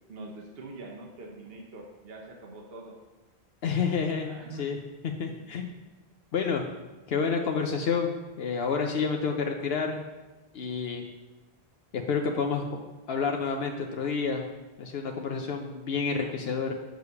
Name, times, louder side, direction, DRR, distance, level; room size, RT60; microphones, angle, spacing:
voice 1, 0.1-3.0 4.2-4.7, right 2 dB, 65° right, 0 dB, 1.2 m, -44 dB
voice 2, 3.6-4.8 5.2-5.7 6.3-6.6 7.1-10.0 10.5-11.1 11.9-12.8 13.1-14.4 14.8-16.7, left 5 dB, 70° left, 3 dB, 0.9 m, -29 dB
6.5 x 4.9 x 6.8 m, 1.1 s
omnidirectional pair, 1.1 m